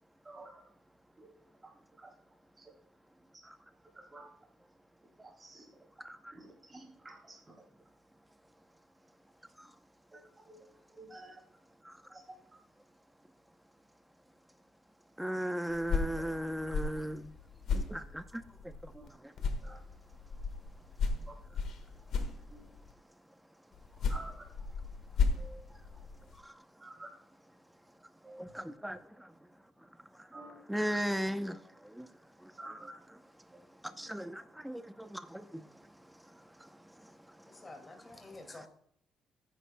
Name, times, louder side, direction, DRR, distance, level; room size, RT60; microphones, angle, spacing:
voice 1, 0.2-0.7 1.2-1.3 1.6-1.7 2.0-2.1 2.6-2.7 3.9-4.3 5.2-5.7 6.3-7.4 10.1-10.6 10.9-11.4 12.1-12.3 16.2-16.3 18.9-19.1 19.6-19.8 21.3-21.4 22.5-22.7 24.1-24.5 25.4-25.6 26.8-27.1 28.2-28.7 30.3-30.6 32.6-32.9 34.0-34.1, right 2 dB, 20° right, 3.1 m, -50 dB
voice 2, 6.0-6.3 9.6-9.7 11.8-12.2 15.2-17.3 17.7-19.5 25.7-25.8 26.4-26.9 28.4-29.4 30.0-30.3 30.7-32.8 33.1-37.6, equal, 5° right, 0.7 m, -39 dB
sound 1, 15.7-19.1 19.4-22.9 23.7-26.4, left 5 dB, 75° left, 1.5 m, -35 dB
voice 3, 37.3-38.7, left 2 dB, 20° left, 2.2 m, -50 dB
19.0 x 10.0 x 2.2 m
cardioid pair, 120°, 0 cm